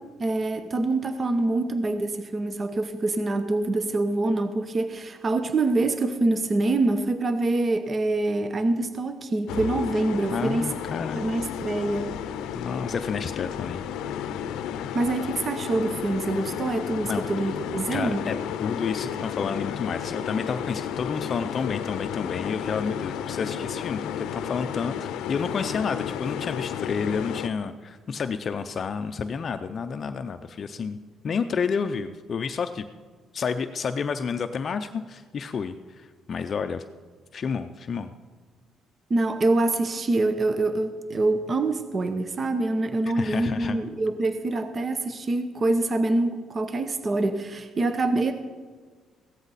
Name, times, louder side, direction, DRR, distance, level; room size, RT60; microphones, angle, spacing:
voice 1, 0.2-10.7 11.1-12.2 14.9-18.2 39.1-48.3, right 2 dB, 30° right, 9 dB, 0.8 m, -25 dB
sound 1, 9.5-27.5, left 9 dB, 90° left, 0.6 m, -32 dB
voice 2, 10.3-11.2 12.5-13.8 16.4-16.5 17.0-17.3 17.9-18.3 18.6-31.0 31.2-32.9 33.3-36.8 37.3-38.1 43.1-43.8, left 6 dB, 40° left, 8 dB, 0.5 m, -30 dB
16.0 x 13.5 x 4.1 m, 1.5 s
cardioid pair, 125°, 0 cm